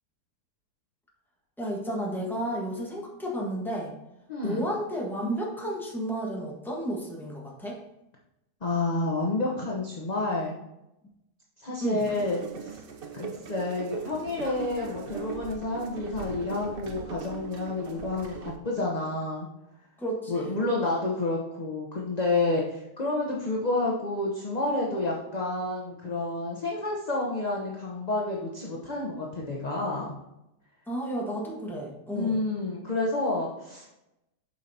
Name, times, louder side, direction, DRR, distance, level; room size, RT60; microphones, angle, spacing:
voice 1, 1.6-3.9 4.4-7.8 11.8-12.1 20.0-20.6 30.9-32.4, right 1 dB, ahead, -3 dB, 1.3 m, -32 dB
voice 2, 4.3-4.6 8.6-10.6 11.6-12.8 13.1-19.5 20.3-30.1 32.1-33.9, left 2 dB, 35° left, -3 dB, 0.8 m, -29 dB
sound 1, 12.0-18.6, right 5 dB, 60° right, 0.6 m, -40 dB
7.7 x 5.6 x 2.8 m, 0.89 s
omnidirectional pair, 1.8 m